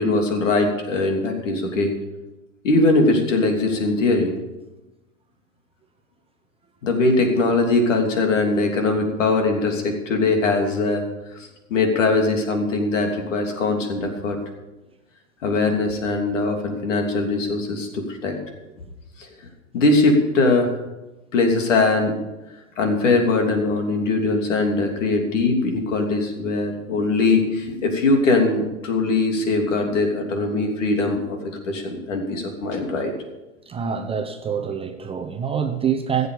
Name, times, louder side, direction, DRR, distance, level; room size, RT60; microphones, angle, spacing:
voice 1, 0.0-1.9 2.6-4.3 6.8-11.0 11.7-14.4 15.4-18.3 19.2-19.3 19.7-20.7 21.3-22.1 22.8-31.4 31.7-33.1, left 3 dB, 65° left, 3.1 m, -21 dB
voice 2, 33.7-36.3, right 7 dB, 15° right, 0.8 m, -25 dB
15.0 x 8.1 x 6.9 m
hypercardioid pair, 110°, 40 cm